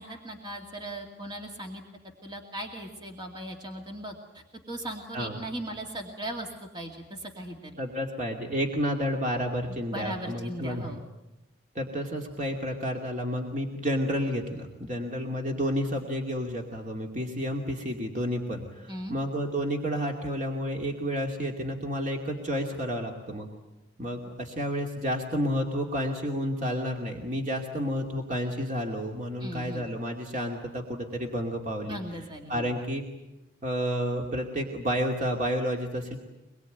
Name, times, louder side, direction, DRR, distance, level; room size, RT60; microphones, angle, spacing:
voice 1, 0.0-1.8 2.2-7.7 9.9-11.0 18.9-19.2 29.4-29.9 31.8-32.7, right 1 dB, 25° right, 2 dB, 2.3 m, -38 dB
voice 2, 7.8-10.9 11.7-23.5 24.0-32.0 32.5-33.0 33.6-36.2, equal, 40° right, 1 dB, 2.5 m, -30 dB
25.0 x 22.0 x 9.2 m, 0.99 s
head